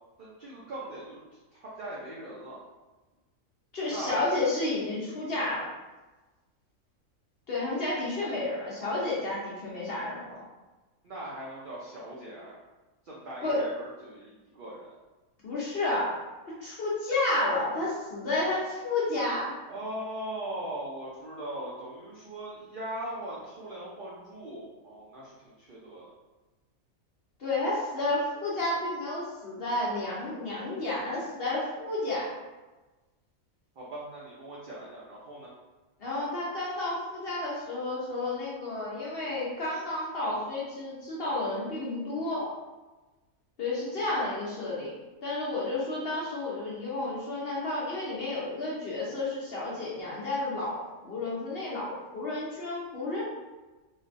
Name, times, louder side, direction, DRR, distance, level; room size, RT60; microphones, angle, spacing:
voice 1, 0.2-2.6 3.9-4.2 11.0-12.5 13.0-14.9 19.7-26.1 33.8-35.5, right 1 dB, 75° right, -6 dB, 0.4 m, -40 dB
voice 2, 3.7-5.7 7.5-10.4 13.4-13.7 15.4-16.2 16.6-19.5 27.4-32.3 36.0-42.5 43.6-44.9 45.2-50.7 51.0-53.2, left 2 dB, 55° left, -6 dB, 0.8 m, -31 dB
3.1 x 2.1 x 2.5 m, 1.2 s
omnidirectional pair, 1.5 m